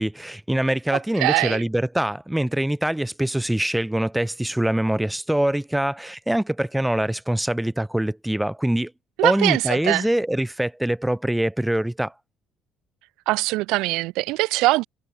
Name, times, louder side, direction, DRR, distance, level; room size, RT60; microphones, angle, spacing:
voice 1, 0.0-8.9 9.2-12.1, right 1 dB, 5° right, 1.0 m, -24 dB
voice 2, 1.2-1.6 9.2-10.1 13.3-14.8, right 20 dB, 85° right, 1.2 m, -22 dB
cardioid pair, 90°, 0 cm